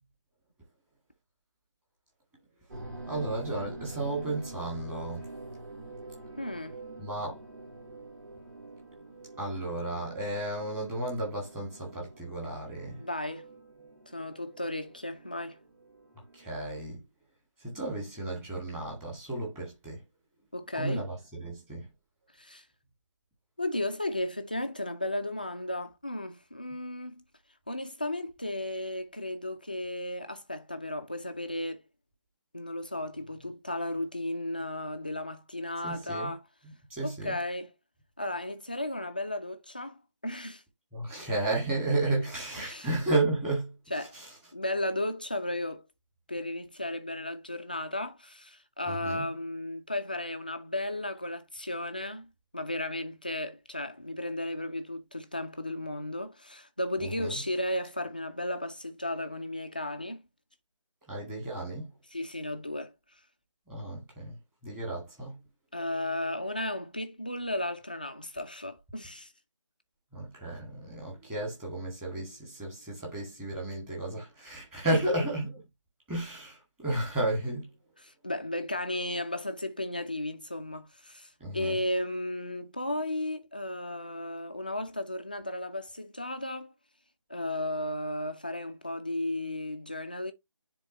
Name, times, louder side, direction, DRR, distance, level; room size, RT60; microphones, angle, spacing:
sound 1, 2.7-16.7, right 2 dB, 35° right, 2.7 m, -46 dB
voice 1, 3.1-5.3 7.0-7.4 9.4-13.0 16.4-17.1 17.6-20.0 20.7-21.9 35.8-36.3 36.9-37.4 40.9-43.7 44.1-44.3 48.9-49.2 57.0-57.3 61.1-61.9 63.7-64.4 64.6-65.4 70.1-75.5 76.1-77.7 81.4-81.8, right 2 dB, 10° right, 1.9 m, -33 dB
voice 2, 6.4-6.8 13.0-13.5 14.1-15.6 20.5-21.1 22.4-22.6 23.6-27.2 27.7-31.8 32.5-36.4 37.0-37.7 38.2-40.6 42.6-42.9 43.9-44.2 44.5-45.8 46.3-60.2 62.1-62.9 65.7-69.3 74.9-75.2 78.0-86.7 87.3-90.3, left 1 dB, 20° left, 0.3 m, -34 dB
9.6 x 3.6 x 3.1 m
figure-of-eight pair, 160°, 16 cm